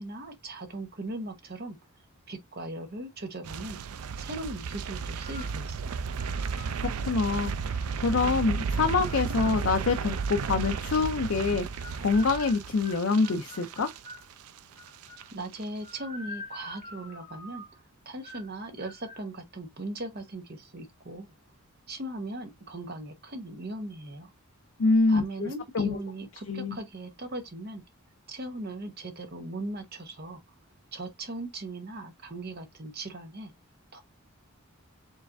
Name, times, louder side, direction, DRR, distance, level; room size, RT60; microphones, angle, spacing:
voice 1, 0.0-1.8 2.3-3.8 4.2-6.2 15.3-21.3 21.9-24.3 25.1-27.8 28.3-30.4 30.9-33.5 33.9-34.0, right 1 dB, 45° right, 1.0 m, -39 dB
sound 1, 3.4-14.6 14.9-15.2 15.5-15.6, right 5 dB, 80° right, 0.4 m, -33 dB
sound 2, 5.2-5.6 6.2-6.8 7.4-8.4 9.0-10.9 11.5-14.3 14.8-15.3 15.8-17.8 18.2-18.5 18.8-19.2, left 2 dB, 25° left, 2.0 m, -47 dB
voice 2, 7.0-13.9 24.8-26.0 26.5-26.8, left 4 dB, 65° left, 0.5 m, -26 dB
4.7 x 3.2 x 2.5 m
head